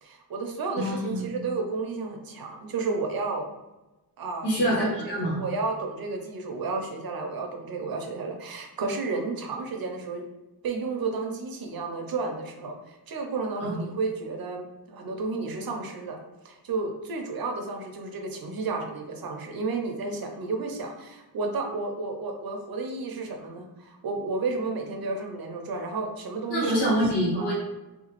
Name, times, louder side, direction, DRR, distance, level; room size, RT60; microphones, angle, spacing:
voice 1, 0.0-3.5 4.2-4.9 5.2-10.2 10.6-16.2 16.4-27.0 27.4-27.5, right 3 dB, 60° right, 3 dB, 0.6 m, -32 dB
voice 2, 0.8-1.3 4.4-5.4 13.6-13.8 26.5-27.5, equal, 80° left, -5 dB, 1.1 m, -25 dB
2.8 x 2.3 x 2.9 m, 1.0 s
wide cardioid pair, 90°, 40 cm